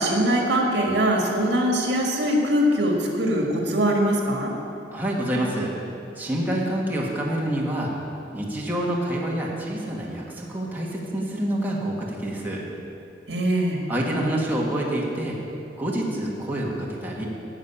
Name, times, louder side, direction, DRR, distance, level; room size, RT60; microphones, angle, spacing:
voice 1, 0.0-4.5 13.3-13.8, equal, 70° right, 0 dB, 1.9 m, -22 dB
voice 2, 4.9-5.7 6.1-7.9 8.3-12.6 13.9-15.4 15.8-17.3, right 1 dB, 10° right, -4 dB, 1.6 m, -27 dB
12.0 x 6.5 x 8.7 m, 2.8 s
head